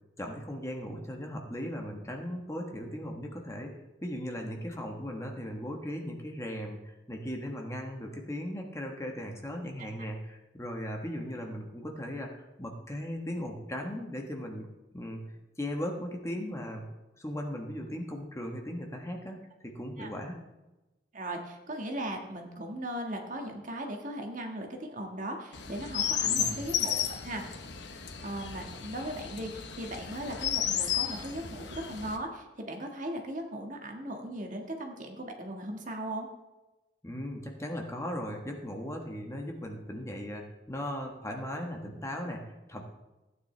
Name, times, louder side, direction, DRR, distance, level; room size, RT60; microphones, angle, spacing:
voice 1, 0.2-3.7 4.0-14.7 14.9-15.2 15.6-16.9 17.2-20.4 26.2-26.6 37.0-42.8, equal, 15° left, 2 dB, 1.3 m, -37 dB
voice 2, 9.8-10.1 20.0-20.1 21.1-27.6 28.2-36.3, right 1 dB, 45° right, 2 dB, 1.6 m, -38 dB
Chirp tweet, 25.5-32.2, left 9 dB, 70° left, 1.0 m, -33 dB
15.0 x 9.4 x 3.3 m, 1.0 s
head